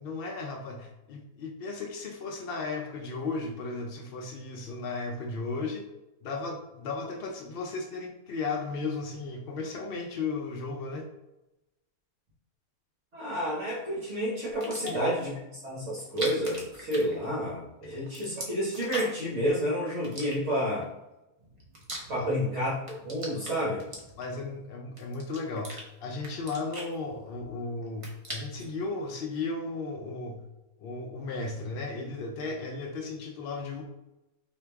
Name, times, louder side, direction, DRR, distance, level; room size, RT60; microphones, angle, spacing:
voice 1, 0.0-5.8 6.2-11.1 14.8-15.0 17.8-18.0 22.2-22.3 24.2-30.4 30.8-33.8, left 3 dB, 85° left, 2 dB, 0.5 m, -35 dB
voice 2, 13.1-20.8 22.1-22.7 23.0-23.9, equal, 55° right, -7 dB, 1.4 m, -30 dB
sound 1, 14.5-15.1 16.0-17.7 17.9-19.3 20.0-20.8 21.4-22.5 22.8-24.5 25.0-25.8 26.2-27.5 27.8-28.7, right 1 dB, 30° right, 0.7 m, -41 dB
4.4 x 2.6 x 3.4 m, 0.95 s
omnidirectional pair, 1.6 m